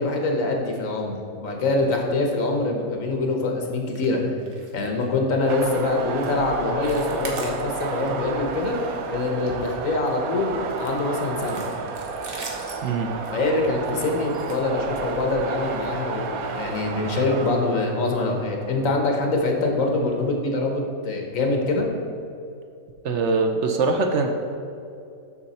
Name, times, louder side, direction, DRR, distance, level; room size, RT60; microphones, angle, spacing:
voice 1, 0.0-4.2 4.7-8.8 9.1-11.6 13.3-21.9, left 2 dB, 70° left, 2 dB, 1.4 m, -24 dB
sound 1, 3.9-4.1 4.4-4.7 5.0-5.2 5.6-5.8 6.2-6.4 6.7-8.1 8.4-8.7 9.0-10.1 10.7-15.3 16.0-16.2 16.6-16.7 17.1-17.2, right 2 dB, 45° right, 1.2 m, -41 dB
sound 2, 5.5-20.3, right 4 dB, 90° right, 1.1 m, -32 dB
voice 2, 23.0-24.3, right 4 dB, 65° right, 4 dB, 0.9 m, -22 dB
7.1 x 6.5 x 4.2 m, 2.5 s
omnidirectional pair, 1.4 m